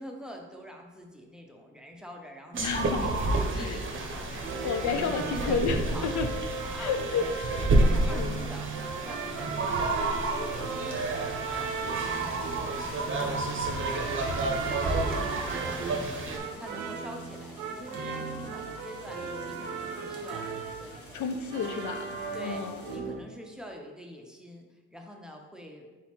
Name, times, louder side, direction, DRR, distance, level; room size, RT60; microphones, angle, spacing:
voice 1, 0.0-5.1 5.3-5.6 5.9-6.1 6.7-7.3 7.8-9.9 10.2-13.7 14.5-15.8 16.5-21.2 22.3-22.6 22.9-25.9, equal, ahead, 2 dB, 0.7 m, -45 dB
sound 1, 2.5-16.4, right 2 dB, 40° right, 0.8 m, -30 dB
voice 2, 2.6-3.1 3.6-3.8 4.3-6.3 6.8-7.5 8.2-8.4 16.4-16.6 21.1-23.1, left 6 dB, 65° left, 7 dB, 0.4 m, -32 dB
sound 2, 3.4-23.2, right 4 dB, 80° right, 0.6 m, -37 dB
sound 3, 10.1-23.0, left 1 dB, 45° left, 1.1 m, -52 dB
4.0 x 4.0 x 3.0 m, 1.3 s
supercardioid pair, 65°, 32 cm